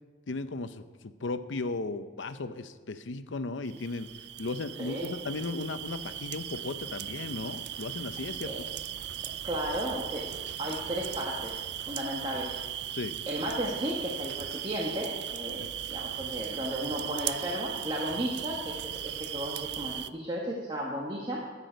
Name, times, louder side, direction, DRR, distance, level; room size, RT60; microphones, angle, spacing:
voice 1, 0.3-4.1 4.4-8.5 12.9-13.2 15.6-15.7, left 3 dB, 85° left, 11 dB, 0.7 m, -36 dB
sound 1, 3.6-20.1, right 11 dB, 65° right, 0.4 m, -38 dB
voice 2, 4.8-5.1 8.4-8.6 9.2-10.3 10.6-12.6 13.3-18.8 19.0-21.4, equal, 25° right, -3 dB, 1.3 m, -34 dB
13.5 x 9.9 x 5.1 m, 1.5 s
head